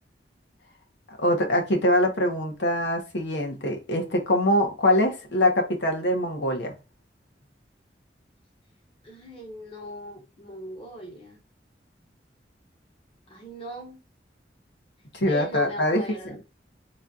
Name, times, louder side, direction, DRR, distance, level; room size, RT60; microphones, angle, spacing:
voice 1, 1.1-6.8 15.1-16.4, left 1 dB, 75° left, 1.1 m, -24 dB
voice 2, 9.0-11.4 13.3-14.0 15.3-16.4, right 1 dB, 30° left, 0.9 m, -39 dB
3.1 x 2.4 x 4.0 m
head